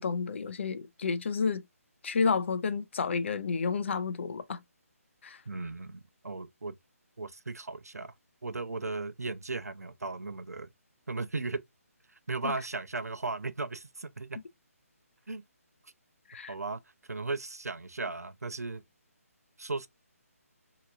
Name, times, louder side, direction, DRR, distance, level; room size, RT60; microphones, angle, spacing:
voice 1, 0.0-1.6 2.0-4.6 5.2-5.4 12.4-12.5 16.3-16.5, left 5 dB, 50° left, 0.5 m, -30 dB
voice 2, 5.5-6.7 7.2-8.1 8.4-10.7 11.1-11.6 12.1-14.4 15.3-15.4 15.8-15.9 16.5-18.8 19.6-19.9, right 3 dB, 85° right, 0.6 m, -36 dB
4.5 x 2.9 x 2.4 m
figure-of-eight pair, 150°, 8 cm